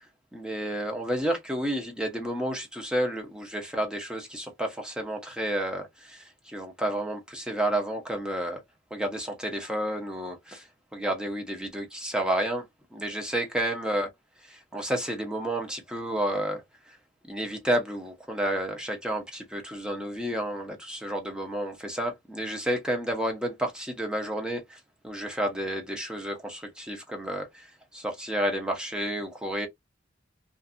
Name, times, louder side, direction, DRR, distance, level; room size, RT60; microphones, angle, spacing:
voice 1, 0.3-8.6 8.9-10.7 10.9-12.7 12.9-14.1 14.5-16.6 17.3-27.7 27.9-29.7, right 1 dB, 5° right, 0.8 m, -31 dB
2.6 x 2.5 x 2.5 m
head